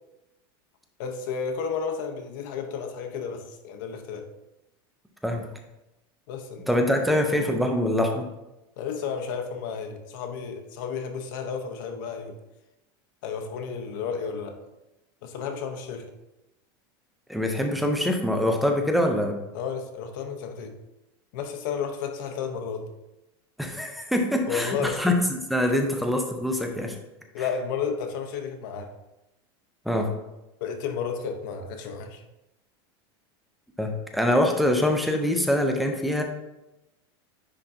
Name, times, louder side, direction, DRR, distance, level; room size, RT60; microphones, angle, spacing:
voice 1, 1.0-4.3 6.3-7.2 8.8-12.4 13.2-14.6 15.2-16.1 19.5-20.7 21.3-22.9 24.5-25.1 25.7-25.8 27.3-28.9 30.6-32.2, left 6 dB, 55° left, 6 dB, 0.8 m, -32 dB
voice 2, 6.7-8.3 17.3-19.4 23.6-27.0 29.9-30.1 33.8-36.2, left 1 dB, ahead, 3 dB, 0.4 m, -24 dB
9.8 x 3.7 x 2.7 m, 0.95 s
supercardioid pair, 180°, 13 cm